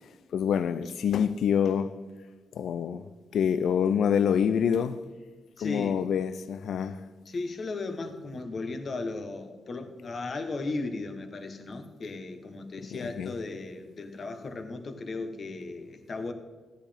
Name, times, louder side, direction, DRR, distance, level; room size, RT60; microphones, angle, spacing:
voice 1, 0.3-1.9 2.5-3.0 3.3-5.0 5.6-7.0 13.0-13.3, left 8 dB, 75° left, 0.4 m, -26 dB
voice 2, 5.6-6.0 7.2-16.3, left 3 dB, 45° left, 1.2 m, -36 dB
14.0 x 9.8 x 3.5 m
cardioid pair, 100°, 0 cm